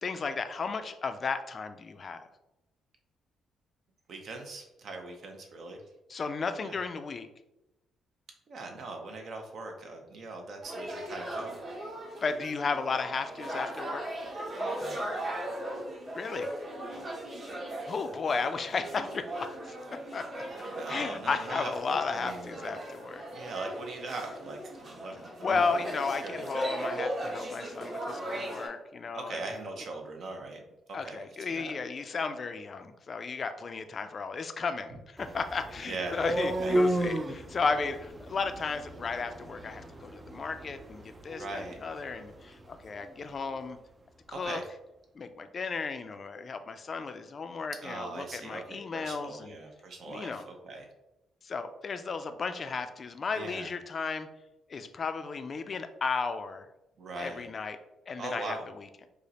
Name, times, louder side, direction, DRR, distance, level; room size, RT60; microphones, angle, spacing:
voice 1, 0.0-2.2 6.1-7.3 12.2-14.0 16.1-16.5 17.9-19.8 20.1-20.4 20.9-23.2 25.2-29.4 30.9-43.8 44.3-44.6 45.2-49.6 50.1-50.5 51.4-54.3 54.7-56.7 57.2-57.8 58.1-59.1, left 4 dB, 40° left, 9 dB, 0.4 m, -34 dB
voice 2, 4.1-5.8 6.6-6.8 8.5-11.5 14.8-15.0 20.8-22.7 23.3-25.7 26.2-26.5 29.1-30.6 30.9-31.2 31.5-31.7 35.9-36.8 41.4-41.8 44.3-44.6 47.8-50.9 53.3-53.7 57.0-57.4 58.2-58.6, right 3 dB, 60° right, 3 dB, 0.7 m, -40 dB
sound 1, 10.6-28.7, right 1 dB, 45° right, 1.2 m, -38 dB
sound 2, 35.2-43.1, right 1 dB, 25° right, 0.4 m, -34 dB
4.9 x 2.1 x 2.8 m, 0.93 s
cardioid pair, 90°, 0 cm